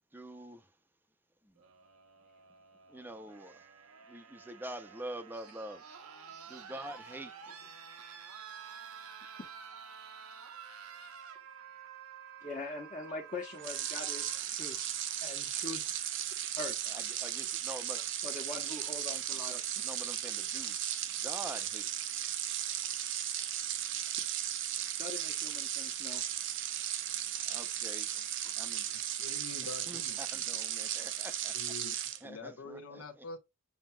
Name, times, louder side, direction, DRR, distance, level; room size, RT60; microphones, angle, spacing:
voice 1, 0.1-0.7 1.4-1.5 2.9-3.7 4.1-5.8 6.5-7.5 16.9-18.0 19.5-20.8 21.2-21.9 27.5-28.1 28.6-28.9 29.9-31.6 31.9-33.0, right 1 dB, 10° right, 0.5 m, -46 dB
sound 1, 1.6-15.5 16.8-16.9, right 7 dB, 90° right, 0.9 m, -50 dB
voice 2, 12.4-14.9 15.2-15.8 16.6-17.0 18.2-19.7 20.1-20.5 22.7-22.8 25.0-26.2 27.9-28.0 28.4-28.5, left 2 dB, 35° left, 1.1 m, -43 dB
sound 2, 13.6-32.2, right 11 dB, 55° right, 0.6 m, -36 dB
voice 3, 28.9-30.7 31.5-33.4, left 3 dB, 80° left, 1.1 m, -47 dB
7.2 x 2.8 x 2.2 m
head